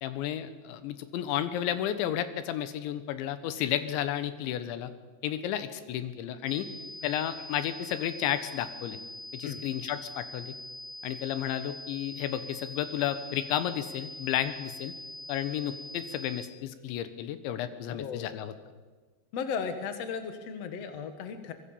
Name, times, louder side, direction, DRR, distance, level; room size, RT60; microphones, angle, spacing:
voice 1, 0.0-4.9 5.2-6.7 7.0-9.0 9.3-10.5 11.0-14.9 15.3-18.5, left 11 dB, 85° left, 12 dB, 3.5 m, -32 dB
sound 1, 6.5-16.5, left 1 dB, 40° left, 2.3 m, -43 dB
voice 2, 17.9-18.4 19.3-21.5, left 6 dB, 65° left, 8 dB, 1.6 m, -36 dB
24.0 x 21.5 x 7.1 m, 1.3 s
omnidirectional pair, 5.2 m